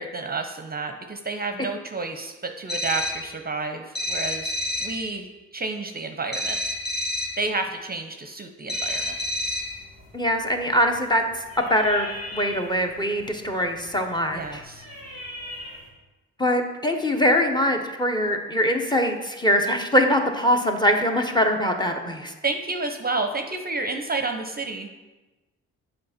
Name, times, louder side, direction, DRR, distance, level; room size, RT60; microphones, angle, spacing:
voice 1, 0.0-4.5 4.8-5.3 5.5-6.6 7.4-9.2 14.3-14.8 22.4-24.9, right 3 dB, 30° right, 5 dB, 0.7 m, -30 dB
sound 1, 2.7-3.3 4.0-5.0 6.3-7.4 8.7-9.8, left 1 dB, 30° left, 1.4 m, -29 dB
sound 2, 8.7-15.9, left 1 dB, 75° left, 2.5 m, -42 dB
voice 2, 10.1-11.2 11.7-12.1 12.3-14.6 16.4-22.3, equal, 15° left, 5 dB, 1.0 m, -22 dB
7.6 x 4.5 x 4.3 m, 1.1 s
hypercardioid pair, 50°, 33 cm